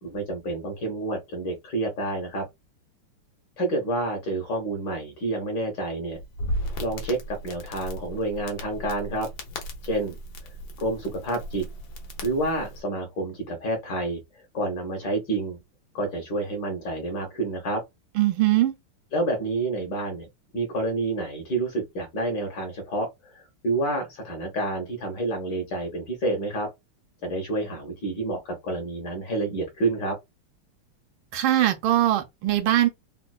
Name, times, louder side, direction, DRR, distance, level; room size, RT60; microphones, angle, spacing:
voice 1, 0.0-2.4 3.6-6.2 6.8-9.3 9.8-10.2 10.8-11.6 12.2-14.2 14.5-15.6 15.9-17.8 19.1-20.3 20.5-23.1 23.6-26.7 27.2-30.2, right 2 dB, 60° left, 1.6 m, -28 dB
Crackle, 6.1-12.8, equal, 85° left, 1.8 m, -36 dB
voice 2, 18.2-18.7 31.3-32.9, right 13 dB, 75° right, 1.3 m, -21 dB
4.3 x 2.2 x 2.3 m
omnidirectional pair, 2.4 m